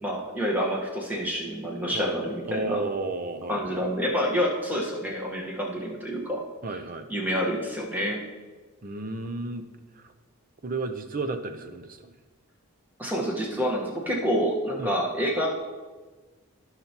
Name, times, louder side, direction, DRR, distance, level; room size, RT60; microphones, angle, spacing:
voice 1, 0.0-2.8 3.5-6.4 7.1-8.2 13.0-15.5, equal, 10° right, -2 dB, 1.2 m, -28 dB
voice 2, 2.5-3.8 6.6-7.1 8.8-9.7 10.0-10.1 10.6-12.1 14.8-15.0, right 2 dB, 40° right, 8 dB, 0.5 m, -32 dB
15.0 x 5.8 x 2.9 m, 1.3 s
head